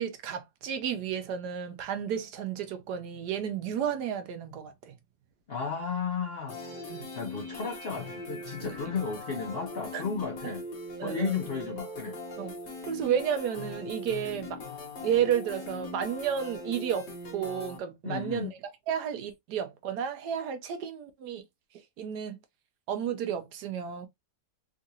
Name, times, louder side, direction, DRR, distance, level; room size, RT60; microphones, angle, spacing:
voice 1, 0.0-4.9 6.9-7.1 8.6-8.7 9.9-10.0 10.4-10.5 11.0-11.4 12.4-12.5 12.8-14.6 15.0-18.6 18.9-21.4 22.0-22.4 22.9-24.1, right 8 dB, 75° right, 1.2 m, -32 dB
voice 2, 5.5-10.6 11.0-12.2 18.0-18.5, left 5 dB, 70° left, 0.5 m, -34 dB
sound 1, 6.5-17.8, left 2 dB, 45° left, 1.1 m, -41 dB
3.7 x 2.5 x 2.7 m
omnidirectional pair, 1.9 m